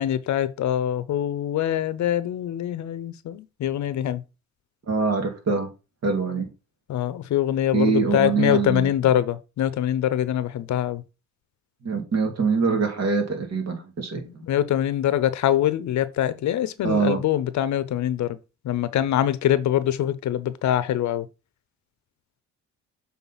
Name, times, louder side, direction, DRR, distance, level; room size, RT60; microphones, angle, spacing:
voice 1, 0.0-4.2 6.9-11.0 14.5-18.4 18.6-21.2, left 11 dB, 65° left, 0.8 m, -24 dB
voice 2, 4.9-5.7 6.0-6.5 7.7-8.9 11.8-14.4 16.8-17.2, right 4 dB, 55° right, 2.7 m, -24 dB
7.2 x 4.0 x 4.1 m
cardioid pair, 90°, 30 cm